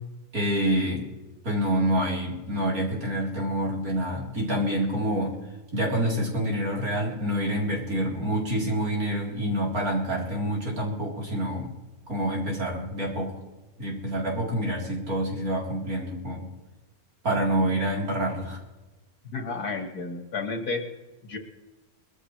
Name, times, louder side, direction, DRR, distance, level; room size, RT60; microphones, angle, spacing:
voice 1, 0.3-1.1 1.4-5.4 5.7-11.7 12.1-13.4 13.8-16.5 17.2-18.6, right 1 dB, 70° right, -3 dB, 4.3 m, -27 dB
voice 2, 19.2-20.9 21.2-21.4, left 4 dB, 90° left, 4 dB, 2.3 m, -32 dB
21.5 x 14.5 x 3.3 m, 1.1 s
omnidirectional pair, 1.6 m